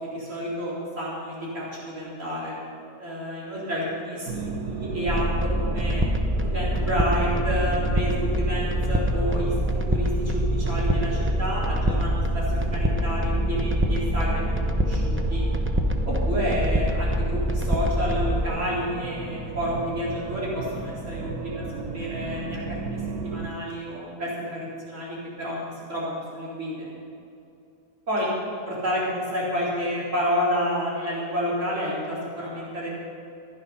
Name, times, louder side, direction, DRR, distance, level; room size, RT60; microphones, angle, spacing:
voice 1, 0.0-2.5 3.0-6.0 6.4-9.6 9.9-15.5 16.1-21.6 21.9-26.9 28.1-28.3 28.6-32.9, equal, 55° right, -7 dB, 4.3 m, -30 dB
sound 1, 4.3-23.5, right 4 dB, 85° right, 1.6 m, -34 dB
sound 2, 5.0-18.4, equal, 15° right, 0.5 m, -25 dB
15.0 x 11.0 x 5.6 m, 2.5 s
omnidirectional pair, 1.6 m